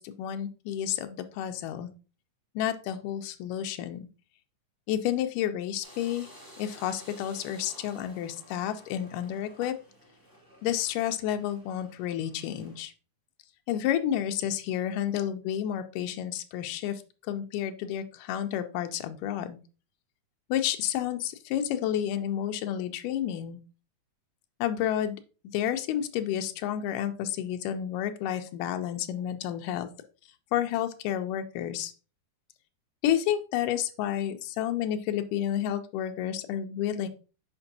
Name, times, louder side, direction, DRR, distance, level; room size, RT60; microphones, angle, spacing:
voice 1, 0.0-1.9 2.6-4.1 4.9-6.3 6.6-9.7 10.6-12.9 13.7-17.0 17.3-19.6 20.5-23.6 24.6-25.2 25.5-29.9 30.5-31.9 33.0-37.1, left 10 dB, 85° left, 7 dB, 2.2 m, -30 dB
sound 1, 5.8-12.8, equal, 15° right, 0.7 m, -53 dB
6.8 x 5.2 x 2.7 m, 0.35 s
omnidirectional pair, 3.7 m